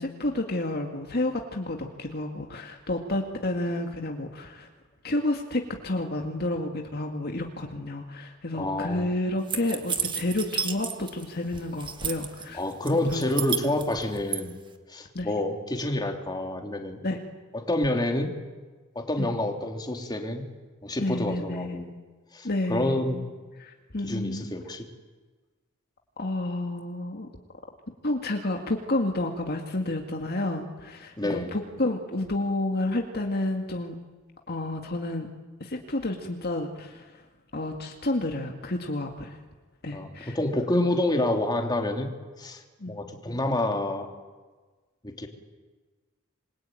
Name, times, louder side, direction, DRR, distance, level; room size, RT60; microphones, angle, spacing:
voice 1, 0.0-4.7 5.0-12.6 12.9-13.2 13.6-13.7 15.1-15.3 17.0-17.2 19.2-19.4 21.0-22.0 22.4-23.2 23.6-24.5 26.2-27.3 28.0-33.9 34.5-35.3 35.6-37.1 37.5-39.4 39.8-40.6 42.8-43.0, left 2 dB, 50° left, 3 dB, 2.1 m, -30 dB
voice 2, 8.5-9.1 12.5-14.5 14.9-17.0 17.5-18.3 18.9-20.4 20.8-21.8 22.3-23.2 24.0-24.9 31.2-31.5 39.9-42.1 42.4-42.6 42.9-44.1 45.0-45.3, left 1 dB, 20° left, 3 dB, 2.9 m, -28 dB
sound 1, 9.5-11.2 11.5-12.4 12.9-14.4, right 7 dB, 25° right, 1.7 m, -31 dB
27.0 x 23.0 x 9.2 m, 1.3 s
head